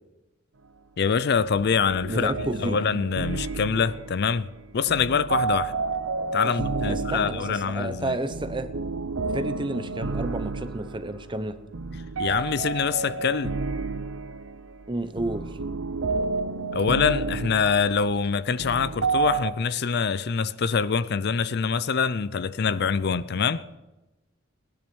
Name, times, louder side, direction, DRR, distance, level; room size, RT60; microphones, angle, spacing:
voice 1, 1.0-2.3 2.6-5.7 6.3-8.2 12.2-13.5 16.7-23.6, left 6 dB, 55° left, 0.5 m, -25 dB
sound 1, 1.4-19.5, right 4 dB, 75° right, 0.7 m, -31 dB
voice 2, 2.1-2.8 6.4-6.5 6.8-8.7 9.3-11.6 14.9-15.6, right 1 dB, 25° right, 0.9 m, -31 dB
18.5 x 10.5 x 6.2 m
head